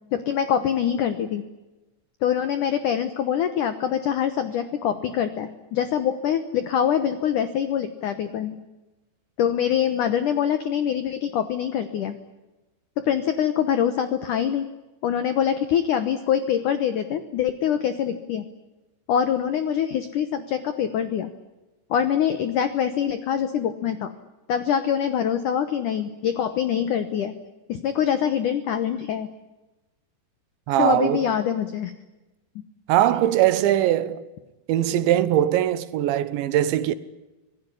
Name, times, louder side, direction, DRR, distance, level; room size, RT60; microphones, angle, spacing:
voice 1, 0.1-1.4 2.2-8.6 9.4-12.2 13.0-14.7 15.0-18.4 19.1-21.3 21.9-24.1 24.5-27.3 27.7-29.3 30.8-31.9, left 9 dB, 80° left, 1.8 m, -24 dB
voice 2, 30.7-31.3 32.9-34.2 34.7-36.9, right 12 dB, 80° right, 3.3 m, -21 dB
26.5 x 18.0 x 9.8 m
omnidirectional pair, 5.3 m